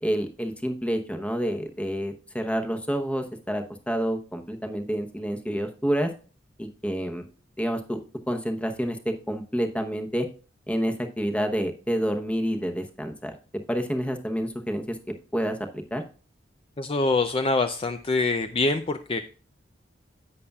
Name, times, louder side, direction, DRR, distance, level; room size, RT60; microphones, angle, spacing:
voice 1, 0.0-6.1 6.6-7.2 7.6-8.0 8.3-10.3 10.7-13.3 13.7-16.0, equal, 5° left, 5 dB, 0.9 m, -28 dB
voice 2, 16.8-19.2, left 3 dB, 30° left, 8 dB, 0.4 m, -25 dB
11.0 x 8.4 x 2.3 m, 0.36 s
head